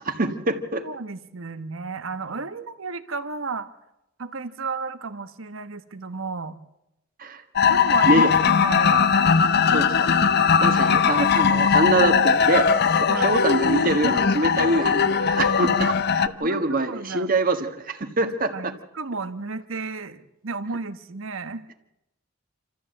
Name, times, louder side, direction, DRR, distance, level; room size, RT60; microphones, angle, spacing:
voice 1, 0.2-0.9 7.2-7.4 8.1-8.3 9.7-10.1 10.6-18.7, right 2 dB, 45° right, 7 dB, 1.6 m, -24 dB
voice 2, 0.8-3.7 4.2-6.6 7.7-9.3 10.4-10.8 13.1-13.4 16.4-17.3 18.2-21.7, right 4 dB, 80° right, 11 dB, 1.2 m, -33 dB
sound 1, 7.6-16.3, left 6 dB, 55° left, 0.7 m, -19 dB
27.5 x 14.0 x 7.8 m, 0.88 s
head